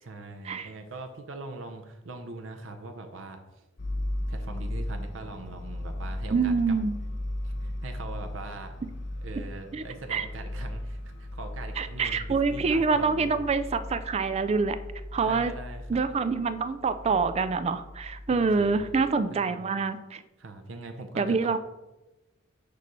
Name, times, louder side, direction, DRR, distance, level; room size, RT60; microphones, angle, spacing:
voice 1, 0.0-3.4 4.3-6.8 7.4-8.7 9.2-13.3 15.2-16.0 18.3-18.9 19.3-19.7 20.4-21.6, right 2 dB, 85° right, 5 dB, 0.7 m, -42 dB
sound 1, 3.8-19.1, left 1 dB, 60° left, 0.8 m, -37 dB
voice 2, 6.3-7.0 9.7-9.8 10.1-10.3 11.8-14.8 15.1-15.5 15.9-20.2 21.2-21.6, right 4 dB, 35° right, 11 dB, 0.3 m, -26 dB
6.7 x 3.2 x 5.3 m, 1.0 s
head